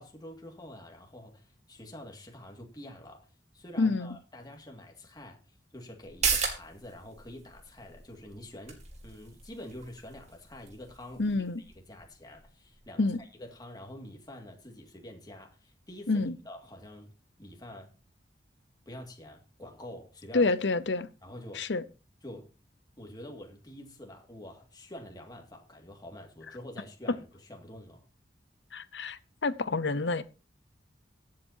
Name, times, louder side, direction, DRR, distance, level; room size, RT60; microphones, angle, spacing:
voice 1, 0.0-3.3 3.5-5.4 5.7-11.5 11.8-17.1 17.4-17.9 18.9-20.5 21.2-21.7 22.2-22.5 23.0-28.1, left 1 dB, 25° left, 2.1 m, -47 dB
voice 2, 3.8-4.1 11.2-11.6 13.0-13.2 16.1-16.4 20.3-21.1 21.5-21.8 28.7-30.2, left 3 dB, 75° left, 0.8 m, -28 dB
sound 1, 6.0-13.2 13.5-13.6, right 5 dB, 40° right, 2.5 m, -37 dB
23.0 x 7.7 x 2.8 m
head